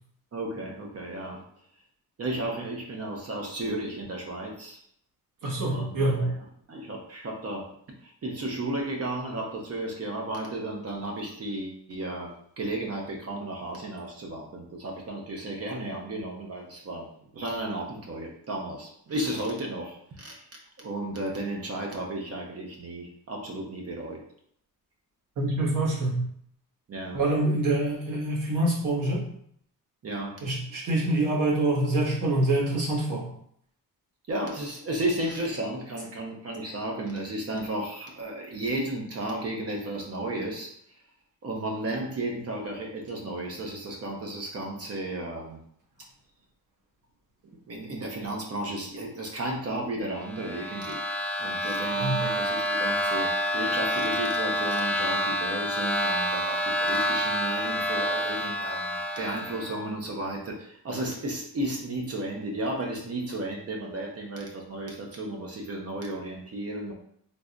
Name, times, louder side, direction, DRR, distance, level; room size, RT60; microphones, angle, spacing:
voice 1, 0.3-1.4 2.2-4.8 5.7-6.3 6.7-7.7 8.0-17.1 17.3-24.2 26.9-27.2 30.0-30.4 34.3-40.7 41.4-45.6 47.5-51.0 51.4-66.9, right 1 dB, 45° right, 0 dB, 0.8 m, -33 dB
voice 2, 5.4-6.2 25.4-26.2 27.1-29.2 30.4-33.2 52.0-52.2, right 2 dB, 60° right, -5 dB, 1.5 m, -25 dB
sound 1, 50.2-59.8, equal, 5° left, 0.4 m, -28 dB
3.8 x 2.9 x 2.5 m, 0.68 s
cardioid pair, 130°, 35 cm